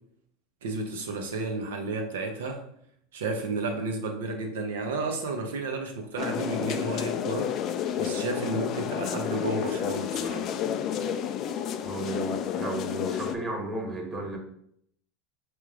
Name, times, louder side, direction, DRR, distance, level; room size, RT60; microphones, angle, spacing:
voice 1, 0.6-2.6 3.1-7.5 8.0-10.5, right 3 dB, 80° right, 4 dB, 0.7 m, -32 dB
sound 1, 6.2-13.4, left 8 dB, 45° left, 0.4 m, -30 dB
voice 2, 11.8-14.4, right 2 dB, 20° right, 0 dB, 1.3 m, -34 dB
3.5 x 3.0 x 3.7 m, 0.69 s
hypercardioid pair, 90°, 0 cm